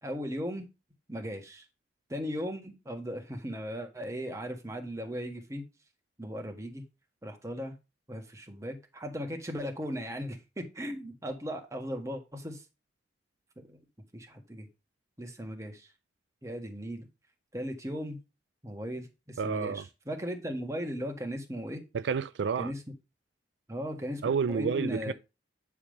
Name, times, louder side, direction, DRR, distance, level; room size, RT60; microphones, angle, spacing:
voice 1, 0.0-0.7 1.1-1.6 2.1-5.6 6.2-6.8 7.2-7.7 8.1-12.6 13.6-13.8 14.1-14.7 15.2-15.9 16.4-17.1 17.5-18.2 18.6-21.8 22.6-22.8 23.7-25.1, equal, 15° right, 1.6 m, -37 dB
voice 2, 19.4-19.8 21.9-22.7 24.2-25.1, right 6 dB, 75° right, 0.4 m, -30 dB
9.8 x 3.5 x 6.4 m
head